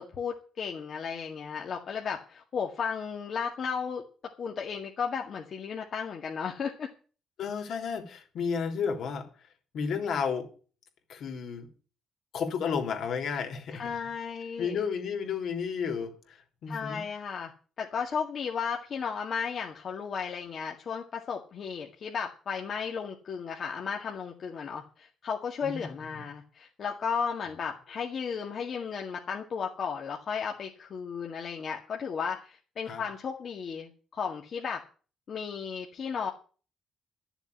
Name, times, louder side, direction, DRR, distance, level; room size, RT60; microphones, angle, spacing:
voice 1, 0.0-4.0 4.4-6.9 13.7-14.8 16.7-17.5 17.8-34.8 35.3-36.3, left 6 dB, 55° left, 2.0 m, -34 dB
voice 2, 7.4-9.3 9.7-10.5 11.1-11.7 12.3-13.8 14.6-17.0 25.6-26.2 32.9-33.0, left 6 dB, 70° left, 3.4 m, -32 dB
12.0 x 7.1 x 9.6 m
cardioid pair, 90°, 0 cm